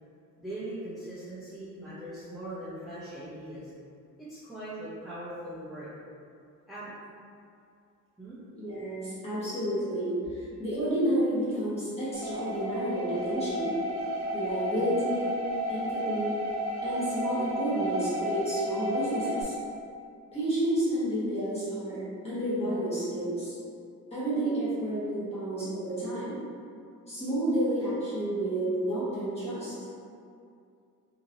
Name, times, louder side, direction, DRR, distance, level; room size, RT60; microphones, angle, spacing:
voice 1, 0.4-3.7 4.2-5.9 6.7-6.9 8.2-8.4, right 1 dB, ahead, -14 dB, 0.6 m, -40 dB
voice 2, 8.5-13.8 14.3-15.4 15.7-16.4 16.8-19.5 20.3-23.6 24.1-26.3 27.1-29.7, right 1 dB, 20° left, -12 dB, 1.2 m, -30 dB
sound 1, 12.1-19.4, equal, 50° right, 0.5 m, -32 dB
2.9 x 2.8 x 2.6 m, 2.4 s
cardioid pair, 150°, 30 cm